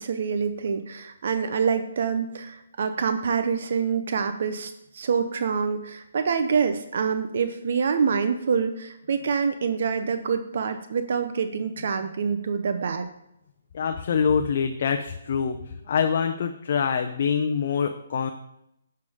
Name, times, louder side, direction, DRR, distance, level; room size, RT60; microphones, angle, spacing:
voice 1, 0.0-13.1, right 6 dB, 55° right, 9 dB, 0.7 m, -26 dB
voice 2, 13.7-15.6 15.9-18.3, left 6 dB, 50° left, 5 dB, 0.6 m, -25 dB
10.5 x 6.6 x 3.6 m, 0.82 s
hypercardioid pair, 160°, 0 cm